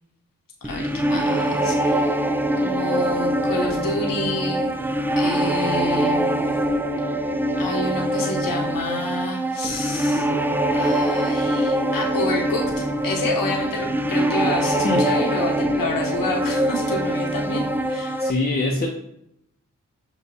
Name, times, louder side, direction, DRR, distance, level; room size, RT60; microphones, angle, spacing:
voice 1, 0.6-2.2 2.6-4.6 5.2-6.5 7.6-10.3 10.7-18.2, left 2 dB, 80° left, 0 dB, 1.0 m, -29 dB
sound 1, 0.6-18.3, right 1 dB, 5° right, 0.3 m, -23 dB
voice 2, 18.2-18.9, left 2 dB, 30° left, -2 dB, 0.7 m, -23 dB
6.9 x 2.3 x 2.7 m, 0.77 s
cardioid pair, 50°, 33 cm